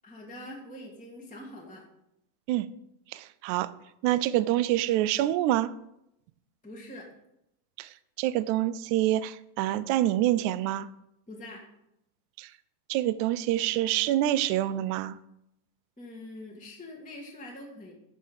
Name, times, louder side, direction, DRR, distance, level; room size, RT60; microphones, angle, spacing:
voice 1, 0.0-1.9 6.6-7.1 11.3-11.6 16.0-17.9, left 1 dB, 5° left, -2 dB, 0.7 m, -44 dB
voice 2, 3.1-3.7 4.0-5.7 7.8-7.9 8.2-10.9 12.4-12.5 12.9-15.2, right 14 dB, 80° right, 15 dB, 1.8 m, -26 dB
13.0 x 4.9 x 5.5 m, 0.82 s
omnidirectional pair, 3.8 m